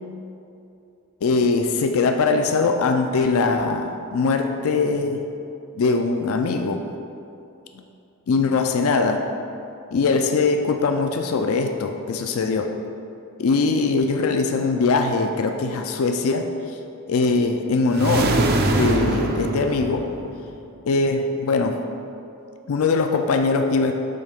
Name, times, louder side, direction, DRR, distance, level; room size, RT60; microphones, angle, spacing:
voice 1, 1.2-5.2 5.7-6.8 7.7-7.8 8.3-9.2 9.9-12.7 13.4-16.5 17.1-18.4 18.8-20.1 20.9-21.8 22.7-23.9, left 4 dB, 70° left, 5 dB, 0.4 m, -21 dB
sound 1, 17.9-20.5, right 2 dB, 45° right, 0.5 m, -23 dB
7.7 x 3.2 x 5.2 m, 2.7 s
head